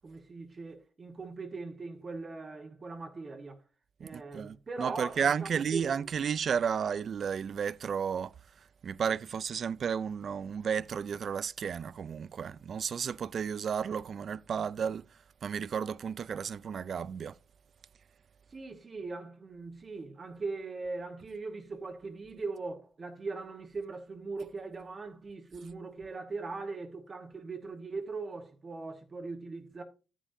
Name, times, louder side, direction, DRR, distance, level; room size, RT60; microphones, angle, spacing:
voice 1, 0.0-3.6 4.0-5.9 18.5-29.8, right 3 dB, 35° right, 1.2 m, -40 dB
voice 2, 4.0-8.4 8.8-17.4, right 7 dB, 55° right, 0.3 m, -33 dB
10.0 x 9.2 x 2.6 m
cardioid pair, 115°, 0 cm